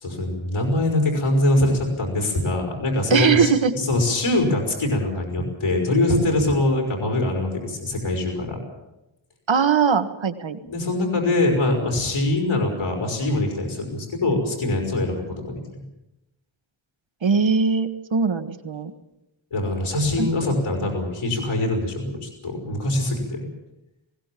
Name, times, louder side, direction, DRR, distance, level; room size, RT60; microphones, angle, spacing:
voice 1, 0.0-8.6 10.6-15.6 19.5-23.5, left 2 dB, 85° left, 0 dB, 5.0 m, -23 dB
voice 2, 3.1-3.7 9.5-10.6 17.2-18.9 20.2-20.3, right 6 dB, 70° right, 9 dB, 1.6 m, -20 dB
20.5 x 18.0 x 7.6 m, 0.94 s
wide cardioid pair, 75°, 47 cm